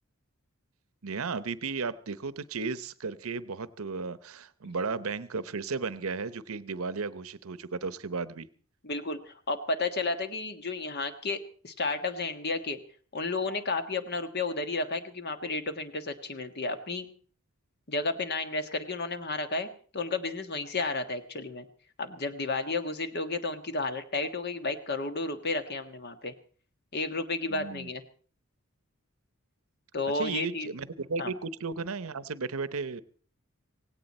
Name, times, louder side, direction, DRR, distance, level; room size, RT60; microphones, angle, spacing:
voice 1, 1.0-8.5 27.5-27.9 30.1-33.0, right 4 dB, 75° right, 0.8 m, -34 dB
voice 2, 8.8-12.8 13.1-17.1 17.9-21.7 22.0-26.3 26.9-28.0 29.9-30.7 31.2-31.3, left 3 dB, 50° left, 1.4 m, -32 dB
17.5 x 17.0 x 4.2 m
head